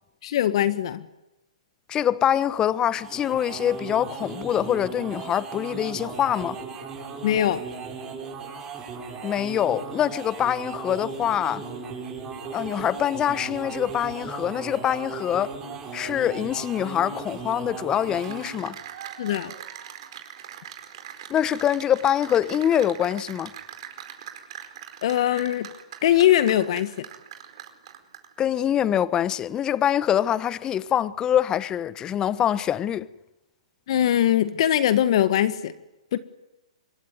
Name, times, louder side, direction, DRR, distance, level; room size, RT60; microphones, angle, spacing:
voice 1, 0.2-1.0 7.2-7.6 19.2-19.5 25.0-25.7 26.0-26.9 33.9-35.7 36.1-36.2, left 11 dB, 55° left, 1.5 m, -21 dB
voice 2, 1.9-6.6 9.2-11.6 12.5-15.5 15.9-18.8 21.3-23.5 28.4-33.1, left 10 dB, 20° left, 1.0 m, -24 dB
sound 1, 2.9-18.7, right 5 dB, 20° right, 7.7 m, -37 dB
Cheering / Applause, 18.0-28.4, right 10 dB, 55° right, 4.6 m, -42 dB
25.5 x 22.0 x 9.6 m
hypercardioid pair, 125°, 3 cm